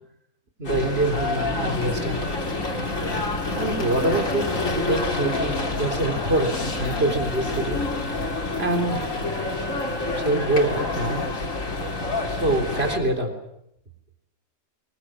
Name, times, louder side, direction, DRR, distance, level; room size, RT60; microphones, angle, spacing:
sound 1, 0.6-13.0, left 2 dB, 60° left, 3.5 m, -27 dB
voice 1, 0.6-2.2 3.5-7.8 8.1-8.2 8.6-9.0 10.1-11.2 12.3-13.3, right 2 dB, 45° right, 4 dB, 4.0 m, -25 dB
26.0 x 22.5 x 7.6 m, 0.78 s
omnidirectional pair, 1.5 m